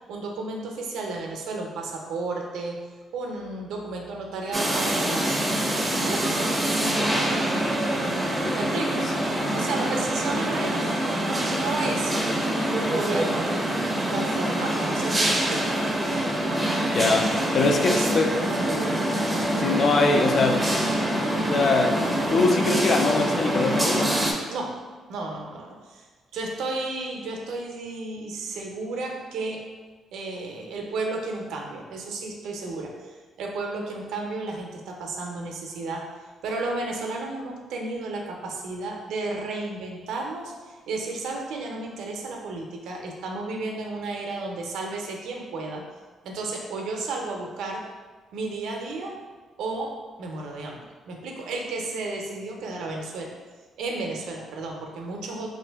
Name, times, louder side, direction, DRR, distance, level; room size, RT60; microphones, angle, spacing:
voice 1, 0.1-2.8 3.1-5.4 6.0-7.5 8.6-9.1 9.5-13.5 14.1-15.8 17.7-19.0 24.5-24.8 25.1-26.1 26.3-29.7 30.1-36.1 36.4-45.9 46.2-47.9 48.3-49.2 49.6-53.3 53.8-55.5, right 3 dB, 80° right, 1 dB, 0.5 m, -33 dB
sound 1, 4.5-24.3, right 1 dB, 15° right, 0.5 m, -25 dB
voice 2, 16.9-18.3 19.6-20.7 21.5-22.0 22.3-24.2, left 3 dB, 55° left, 3 dB, 0.4 m, -22 dB
2.8 x 2.5 x 3.4 m, 1.4 s
cardioid pair, 90°, 0 cm